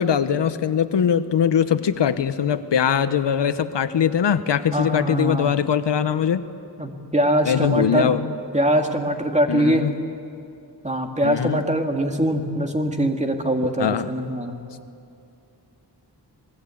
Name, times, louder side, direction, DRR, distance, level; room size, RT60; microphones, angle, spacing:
voice 1, 0.0-6.4 7.5-8.2 9.5-9.9 11.2-11.6 13.8-14.1, left 8 dB, 85° left, 11 dB, 1.0 m, -21 dB
voice 2, 4.7-5.6 6.8-8.1 8.5-9.9 10.8-14.6, right 1 dB, 15° right, 3 dB, 2.2 m, -22 dB
28.0 x 20.0 x 8.5 m, 2.6 s
wide cardioid pair, 100°, 41 cm